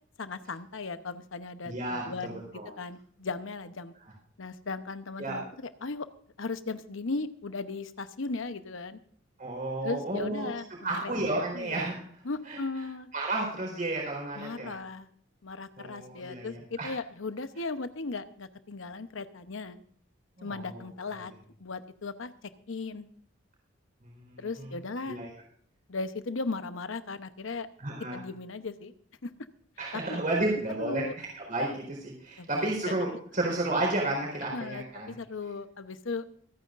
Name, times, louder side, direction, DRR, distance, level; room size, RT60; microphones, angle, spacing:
voice 1, 0.2-3.9 4.4-6.1 6.4-9.0 9.8-11.8 12.2-13.1 14.4-15.1 15.4-19.8 20.4-21.3 21.6-22.3 22.7-23.1 24.4-25.2 25.9-27.7 28.1-28.9 29.2-29.3 29.9-30.2 30.8-31.1 32.4-33.0 34.5-36.3, left 3 dB, 75° left, 11 dB, 0.9 m, -37 dB
voice 2, 1.6-2.7 5.2-5.4 9.4-10.5 10.8-12.0 12.4-12.6 13.1-14.7 15.8-16.9 20.4-20.8 24.0-24.7 25.1-25.3 27.8-28.2 29.8-35.1, right 2 dB, 45° right, -1 dB, 4.4 m, -32 dB
25.5 x 9.4 x 2.6 m, 0.62 s
head